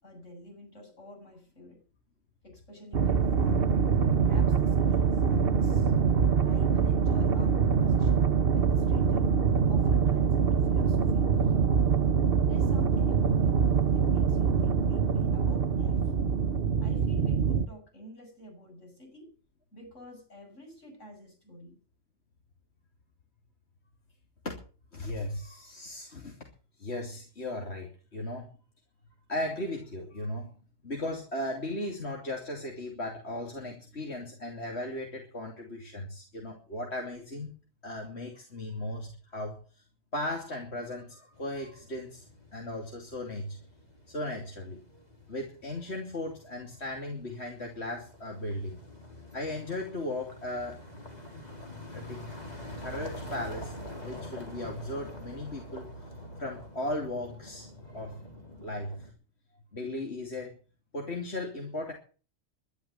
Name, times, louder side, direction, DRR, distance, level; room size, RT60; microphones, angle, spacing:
voice 1, 0.0-1.8 2.4-3.7 4.2-5.9 6.4-9.3 9.7-11.8 12.5-16.0 16.8-19.3 19.7-21.8, equal, 75° left, 3 dB, 8.1 m, -49 dB
sound 1, 2.9-17.7, right 6 dB, 55° right, 1.2 m, -24 dB
voice 2, 24.9-26.4 26.8-28.5 29.3-37.5 37.8-39.8 40.1-42.3 42.5-43.6 44.1-44.8 45.3-48.8 49.3-50.8 51.9-52.2 52.8-55.9 56.4-58.2 58.6-59.1 59.7-60.5 60.9-61.9, left 1 dB, 60° left, 1 dB, 3.3 m, -37 dB
sound 2, 41.3-59.1, left 1 dB, 35° left, 3.8 m, -46 dB
12.5 x 12.0 x 8.3 m, 0.38 s
omnidirectional pair, 1.3 m